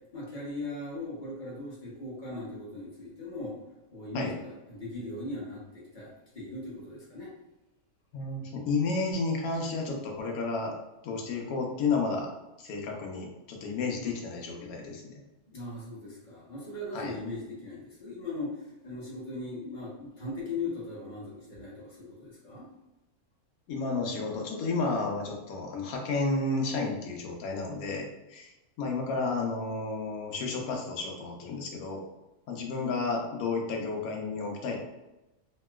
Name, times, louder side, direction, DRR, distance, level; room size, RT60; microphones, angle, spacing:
voice 1, 0.1-3.6 3.9-7.3 15.5-22.7, left 2 dB, 35° left, -5 dB, 1.0 m, -39 dB
voice 2, 8.1-10.7 11.0-12.3 12.6-15.2 16.9-17.2 23.7-28.5 28.8-32.0 32.5-34.8, left 3 dB, 75° left, 0 dB, 1.1 m, -32 dB
2.9 x 2.9 x 2.3 m, 1.0 s
omnidirectional pair, 1.6 m